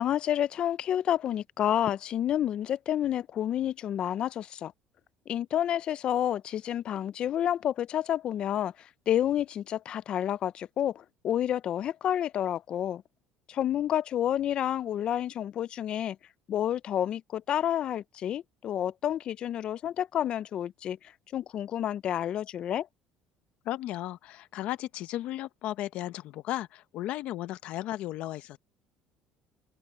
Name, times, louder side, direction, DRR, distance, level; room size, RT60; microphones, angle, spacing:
voice 1, 0.0-4.7 5.3-13.0 13.5-16.2 16.5-21.0 21.3-22.9, left 10 dB, 40° left, 0.4 m, -29 dB
voice 2, 23.6-28.6, left 14 dB, 60° left, 0.9 m, -35 dB
open air
cardioid pair, 150°, 2 cm